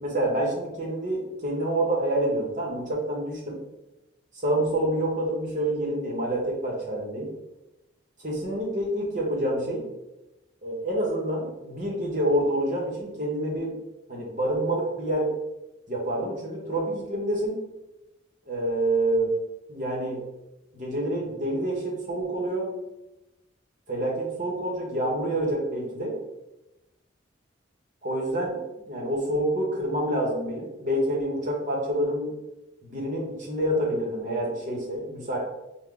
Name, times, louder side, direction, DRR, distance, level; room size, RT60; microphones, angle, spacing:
voice 1, 0.0-3.6 4.4-7.3 8.2-9.8 10.6-13.7 14.1-15.3 15.9-17.6 18.5-19.3 19.7-20.3 20.7-22.7 23.9-26.1 28.0-32.3 32.8-35.4, right 1 dB, 40° right, -2 dB, 1.0 m, -27 dB
4.6 x 2.2 x 3.7 m, 0.98 s
head